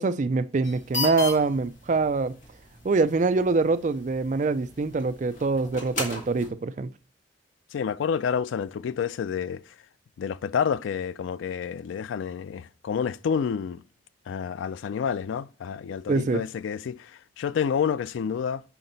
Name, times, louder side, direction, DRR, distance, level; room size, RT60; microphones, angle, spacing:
voice 1, 0.0-2.3 2.8-6.9 16.1-16.4, right 3 dB, 40° right, 0.4 m, -24 dB
sound 1, 0.6-6.5, left 2 dB, 40° left, 1.8 m, -37 dB
voice 2, 7.7-9.6 10.2-13.8 14.3-18.6, left 7 dB, 85° left, 0.3 m, -29 dB
5.8 x 5.1 x 3.9 m
head